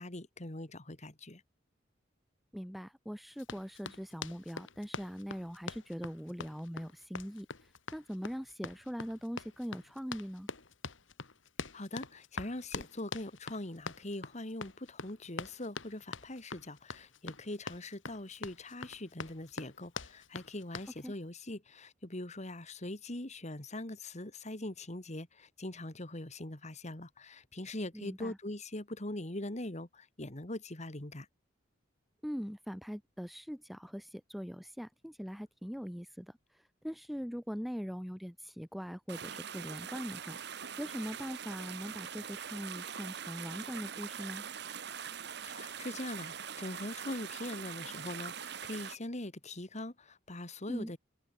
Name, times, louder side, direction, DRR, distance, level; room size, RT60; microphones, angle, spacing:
voice 1, 0.0-1.4 11.7-31.3 45.4-51.0, left 1 dB, 35° left, 2.4 m, -42 dB
voice 2, 2.5-7.5 7.9-10.5 21.0-21.1 27.9-28.4 32.2-36.3 36.8-40.4 40.8-44.4 50.7-50.9, equal, ahead, 0.8 m, -41 dB
Run, 3.4-21.0, left 4 dB, 90° left, 2.7 m, -44 dB
sound 1, 39.1-49.0, right 8 dB, 60° right, 1.5 m, -43 dB
head